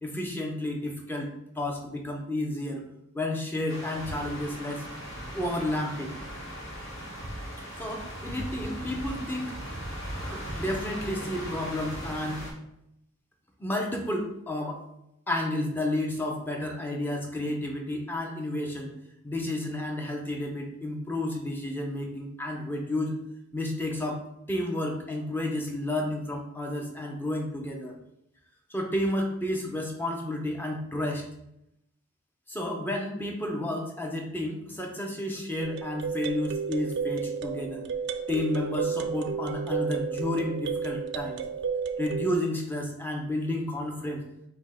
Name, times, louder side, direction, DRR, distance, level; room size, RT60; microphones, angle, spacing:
voice 1, 0.0-2.8 3.1-4.9 5.3-6.2 7.8-9.5 10.1-12.5 13.6-14.8 15.3-18.9 19.2-23.1 23.5-24.2 24.5-27.9 28.7-31.3 32.5-37.9 38.3-41.4 42.0-44.3, left 1 dB, 10° left, 1 dB, 0.6 m, -31 dB
sound 1, 3.7-12.5, equal, 60° left, 1.3 m, -38 dB
sound 2, 35.6-42.3, right 6 dB, 55° right, 0.3 m, -32 dB
5.2 x 2.2 x 3.5 m, 0.80 s
head